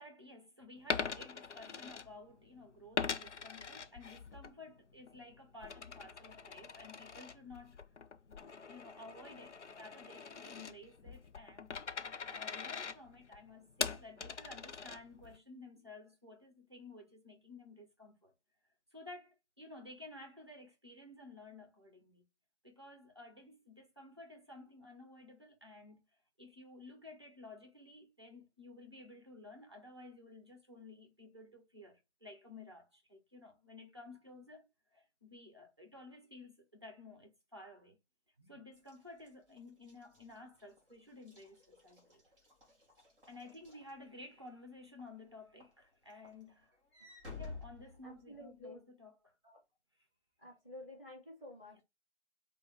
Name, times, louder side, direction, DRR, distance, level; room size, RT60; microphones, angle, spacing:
voice 1, 0.0-7.8 8.3-8.4 8.7-18.3 18.9-22.2 22.6-26.0 26.4-38.0 38.4-42.2 43.3-46.7 47.4-49.3, left 2 dB, 25° right, 0.6 m, -54 dB
Coin (dropping), 0.8-2.5 2.9-4.5 4.9-15.4, left 5 dB, 90° left, 0.6 m, -42 dB
Walk footsteps / Slam, 38.8-44.5 45.0-45.3 45.6-48.6, left 3 dB, 5° right, 1.3 m, -53 dB
voice 2, 48.0-48.8 49.4-49.6 50.4-51.8, left 1 dB, 10° left, 1.5 m, -51 dB
4.6 x 2.3 x 3.3 m
figure-of-eight pair, 160°, 35 cm